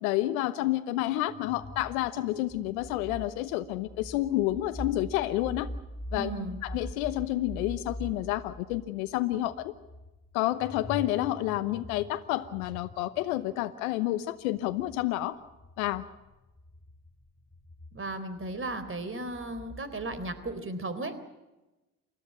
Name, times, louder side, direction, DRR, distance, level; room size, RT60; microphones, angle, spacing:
voice 1, 0.0-5.7 6.1-6.3 6.6-9.7 10.3-15.4 15.8-16.0, left 15 dB, 85° left, 10 dB, 1.0 m, -29 dB
sound 1, 1.3-13.6 14.6-20.6, left 1 dB, 20° left, 2.2 m, -44 dB
voice 2, 6.1-6.6 17.9-21.3, right 2 dB, 30° right, 12 dB, 3.8 m, -35 dB
28.5 x 14.0 x 8.7 m, 1.1 s
hypercardioid pair, 55°, 41 cm